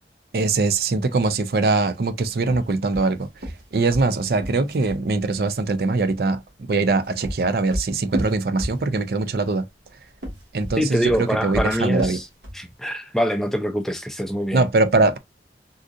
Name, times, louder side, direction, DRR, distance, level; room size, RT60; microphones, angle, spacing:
voice 1, 0.3-3.3 3.7-6.4 6.7-9.7 10.5-12.2 14.5-15.2, right 3 dB, 60° right, 0.5 m, -22 dB
sound 1, 2.4-5.0 6.7-9.2 10.1-12.7, equal, 85° right, 1.6 m, -32 dB
voice 2, 10.8-12.3 12.5-14.6, equal, ahead, 0.4 m, -24 dB
3.8 x 2.4 x 2.5 m
head